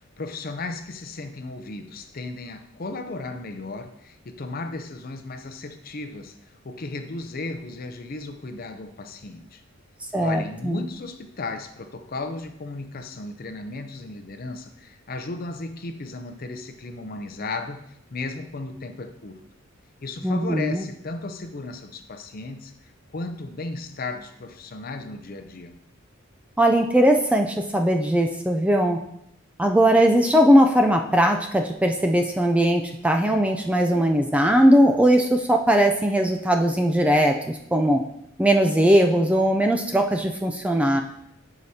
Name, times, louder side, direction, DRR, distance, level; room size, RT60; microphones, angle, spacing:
voice 1, 0.0-9.6 10.2-19.4 20.0-25.8, left 3 dB, 45° left, 8 dB, 0.6 m, -35 dB
voice 2, 10.1-10.8 20.2-20.9 26.6-29.0 29.6-38.0 38.4-41.0, equal, 5° right, 3 dB, 0.3 m, -19 dB
11.5 x 4.9 x 2.8 m, 0.78 s
head